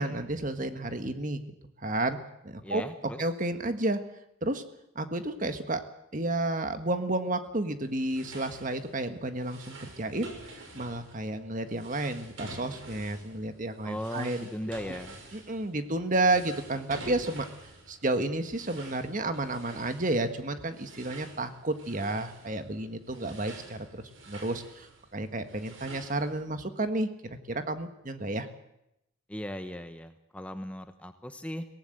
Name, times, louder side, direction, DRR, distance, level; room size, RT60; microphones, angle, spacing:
voice 1, 0.0-1.4 1.8-2.2 2.4-2.8 3.2-4.0 4.4-4.6 4.9-5.8 6.1-14.5 15.3-17.5 17.9-28.5, right 2 dB, 40° right, 8 dB, 1.6 m, -31 dB
voice 2, 2.6-3.2 13.8-15.2 29.3-31.7, left 1 dB, 5° left, 8 dB, 0.9 m, -38 dB
sound 1, 7.8-26.4, right 2 dB, 80° right, 6.1 m, -49 dB
23.5 x 18.0 x 8.0 m, 0.85 s
head